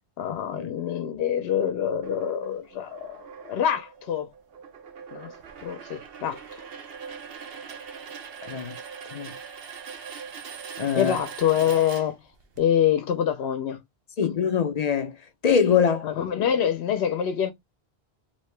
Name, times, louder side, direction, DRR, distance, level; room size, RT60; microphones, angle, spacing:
voice 1, 0.2-4.3 5.1-5.3 5.6-6.6 11.0-12.2 12.6-13.8 16.0-17.5, left 9 dB, 80° left, 0.8 m, -25 dB
sound 1, 2.0-12.6, right 6 dB, 70° right, 0.9 m, -42 dB
voice 2, 8.4-8.7 9.1-9.3 10.8-11.2 14.2-15.2 15.4-16.1, left 7 dB, 50° left, 0.5 m, -23 dB
3.0 x 2.7 x 3.2 m
omnidirectional pair, 1.1 m